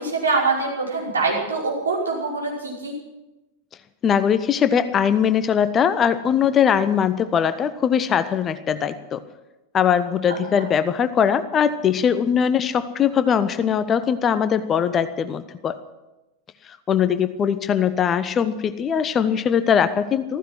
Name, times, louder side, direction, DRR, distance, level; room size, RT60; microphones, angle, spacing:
voice 1, 0.0-2.9 10.3-10.4, right 3 dB, 70° right, -3 dB, 5.6 m, -24 dB
voice 2, 4.0-9.2 9.7-15.8 16.9-20.4, left 8 dB, 25° left, 13 dB, 0.8 m, -21 dB
15.0 x 15.0 x 6.2 m, 1.0 s
figure-of-eight pair, 90°, 0 cm